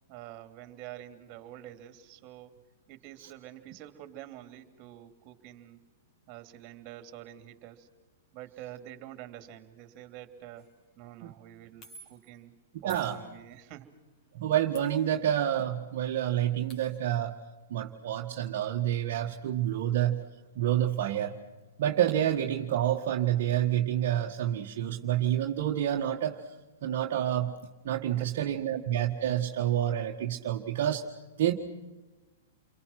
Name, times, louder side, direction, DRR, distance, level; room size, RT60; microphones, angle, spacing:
voice 1, 0.1-2.5 2.9-5.8 6.3-7.9 8.3-10.7 11.0-12.5 12.8-13.9 28.1-28.2, right 13 dB, 40° right, 8 dB, 3.1 m, -47 dB
sound 1, 10.6-10.8 11.8-12.4 12.9-13.7 14.7-15.6 15.9-16.0 16.3-17.2, equal, 35° left, 5.7 m, -54 dB
voice 2, 12.8-13.2 14.3-17.3 17.7-20.2 20.6-21.4 21.8-26.4 26.8-27.5 27.8-31.0 31.4-31.5, right 11 dB, 60° right, 0 dB, 1.7 m, -28 dB
29.5 x 24.0 x 6.0 m, 1.2 s
hypercardioid pair, 115°, 0 cm